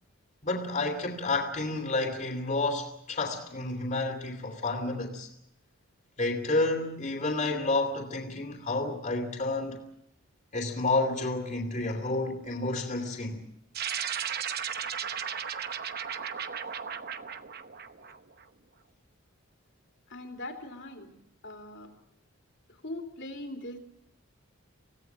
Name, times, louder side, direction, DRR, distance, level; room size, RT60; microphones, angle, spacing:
voice 1, 0.4-5.3 6.2-9.8 10.5-13.4, left 2 dB, 35° left, 3.0 m, -30 dB
sound 1, 13.7-18.4, right 8 dB, 45° right, 0.9 m, -35 dB
voice 2, 20.1-21.1 21.4-21.9 22.7-23.8, left 1 dB, 55° left, 3.1 m, -41 dB
25.5 x 17.5 x 7.4 m
head